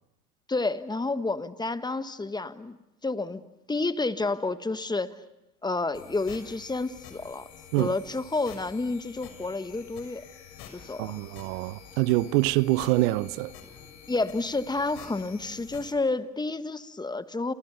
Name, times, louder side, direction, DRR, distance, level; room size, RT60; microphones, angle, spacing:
voice 1, 0.5-2.8 3.0-3.4 3.7-5.1 5.6-7.5 7.8-10.2 10.7-11.2 14.1-17.5, left 3 dB, 10° left, 1.3 m, -30 dB
sound 1, 5.9-15.9, left 7 dB, 45° left, 6.4 m, -48 dB
voice 2, 11.0-13.5, right 18 dB, 55° right, 0.9 m, -25 dB
29.5 x 28.5 x 6.9 m
hypercardioid pair, 95°, 49 cm